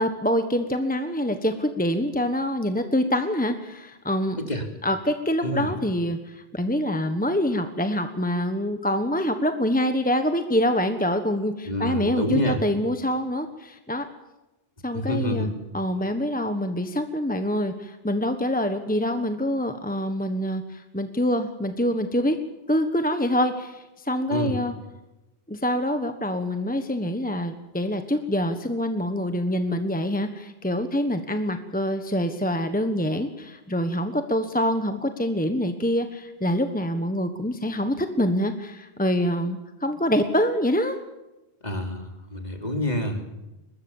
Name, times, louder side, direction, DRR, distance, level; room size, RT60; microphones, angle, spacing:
voice 1, 0.0-4.4 4.8-14.1 14.8-22.4 22.7-24.7 25.5-41.0, equal, 10° left, 7 dB, 1.3 m, -25 dB
voice 2, 11.6-12.6 14.9-15.5 24.3-24.6 41.6-43.3, left 1 dB, 40° left, 4 dB, 3.4 m, -27 dB
23.0 x 20.0 x 7.3 m, 1.0 s
omnidirectional pair, 1.1 m